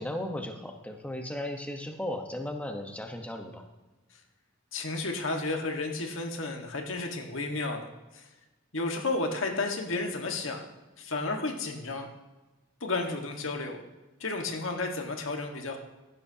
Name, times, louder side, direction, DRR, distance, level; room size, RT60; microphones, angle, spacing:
voice 1, 0.0-3.6, left 1 dB, 5° left, 3 dB, 1.1 m, -36 dB
voice 2, 4.7-7.9 8.1-8.2 8.7-10.7 11.0-12.1 12.8-13.8 14.2-15.8, left 3 dB, 85° left, 3 dB, 1.6 m, -32 dB
16.0 x 11.5 x 2.9 m, 1.1 s
head